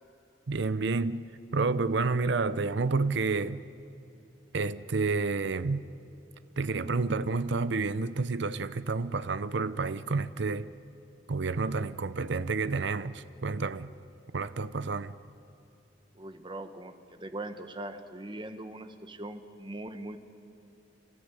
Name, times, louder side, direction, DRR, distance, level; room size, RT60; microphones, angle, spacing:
voice 1, 0.5-1.2 1.5-3.6 4.5-5.8 6.6-10.7 11.3-13.9 14.3-15.1, right 3 dB, 65° right, 0.7 m, -29 dB
voice 2, 16.1-20.2, right 1 dB, 25° right, 1.3 m, -41 dB
29.5 x 14.0 x 9.8 m
head